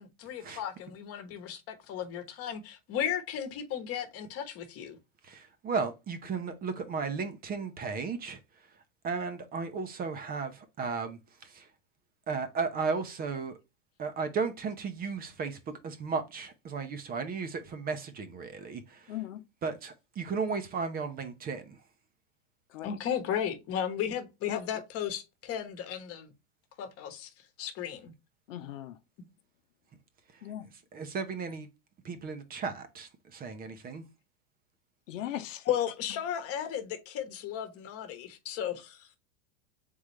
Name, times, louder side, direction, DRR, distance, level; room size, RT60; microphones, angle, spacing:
voice 1, 0.0-5.0 22.8-26.3 26.8-27.3 27.6-28.1 35.6-39.1, left 9 dB, 40° left, 1.2 m, -35 dB
voice 2, 5.3-8.4 9.0-11.6 12.3-13.6 14.0-15.6 15.8-19.0 19.6-21.8 30.9-31.7 32.0-34.0, right 5 dB, 25° right, 0.7 m, -35 dB
voice 3, 19.1-19.4 22.7-22.9 24.5-24.6 28.5-29.0 30.4-30.7 35.1-35.7, left 12 dB, 85° left, 0.9 m, -38 dB
3.9 x 3.8 x 3.2 m
supercardioid pair, 125°, 37 cm